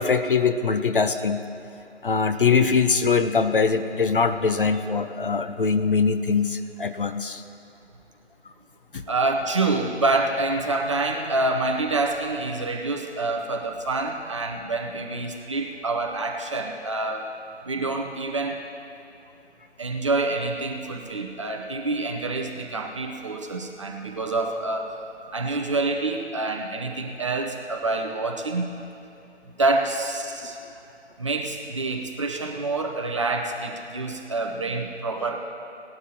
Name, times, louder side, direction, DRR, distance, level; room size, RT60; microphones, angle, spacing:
voice 1, 0.0-1.4 2.0-7.4 8.9-9.0, left 5 dB, 50° left, 9 dB, 0.6 m, -22 dB
voice 2, 9.1-17.3 17.6-18.6 19.8-24.9 25.3-28.8 29.6-30.6 31.2-35.4, right 2 dB, 25° right, 2 dB, 0.7 m, -27 dB
18.5 x 12.0 x 2.9 m, 2.8 s
figure-of-eight pair, 145°, 35 cm